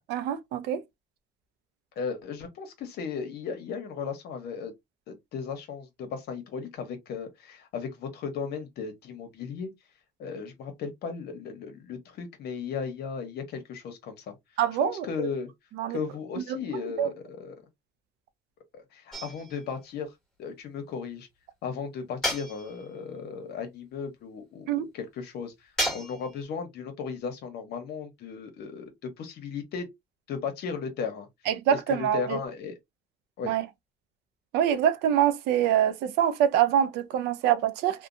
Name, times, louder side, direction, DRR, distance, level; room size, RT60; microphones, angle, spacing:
voice 1, 0.1-0.8 14.6-15.3 15.8-16.0 16.4-16.5 17.0-17.1 24.7-24.9 31.5-32.4 33.4-33.6 34.5-38.1, right 10 dB, 85° right, 0.5 m, -25 dB
voice 2, 2.0-4.7 5.1-9.7 10.2-14.3 14.8-15.5 15.9-17.5 18.7-20.1 20.4-21.3 21.6-25.5 25.9-29.9 30.3-31.3 31.7-32.8 33.4-33.5, left 6 dB, 70° left, 1.0 m, -36 dB
sound 1, 19.1-19.8 22.2-23.0 25.8-26.4, equal, 5° left, 1.3 m, -32 dB
2.8 x 2.2 x 2.5 m
cardioid pair, 110°, 17 cm